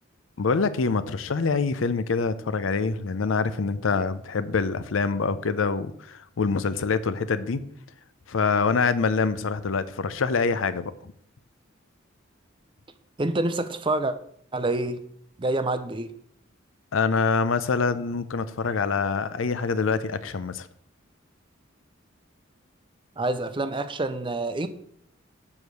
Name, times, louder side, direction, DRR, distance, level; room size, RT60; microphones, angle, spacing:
voice 1, 0.4-7.7 8.3-11.1 16.9-20.7, left 4 dB, 80° left, 14 dB, 0.6 m, -25 dB
voice 2, 13.2-14.2 14.5-15.0 15.4-16.1 23.2-24.7, right 2 dB, 25° right, 11 dB, 0.5 m, -27 dB
7.2 x 4.7 x 6.4 m, 0.66 s
head